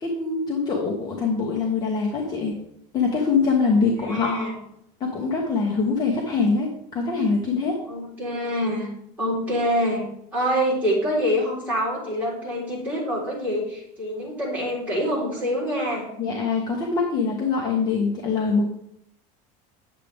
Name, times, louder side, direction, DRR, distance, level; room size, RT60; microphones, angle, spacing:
voice 1, 0.0-2.5 2.9-4.4 5.0-7.8 16.2-18.7, left 4 dB, 25° left, -1 dB, 1.0 m, -23 dB
voice 2, 4.0-4.5 7.9-8.9 9.2-10.0 10.3-16.1, equal, 10° right, -8 dB, 3.8 m, -25 dB
9.5 x 7.4 x 3.5 m, 0.75 s
cardioid pair, 175°, 17 cm